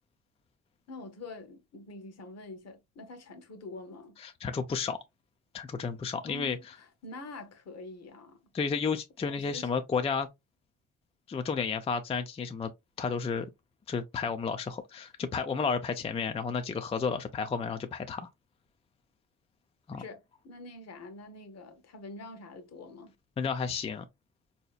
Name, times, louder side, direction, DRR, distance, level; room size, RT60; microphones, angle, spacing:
voice 1, 0.9-4.2 6.3-8.4 9.2-9.7 19.9-23.1, left 2 dB, 60° left, 1.0 m, -46 dB
voice 2, 4.2-5.0 5.5-6.6 8.5-10.3 11.3-12.7 13.0-13.5 13.9-18.3 19.9-20.0 23.4-24.0, left 5 dB, 20° left, 0.4 m, -32 dB
4.0 x 2.8 x 2.3 m
cardioid pair, 90°, 30 cm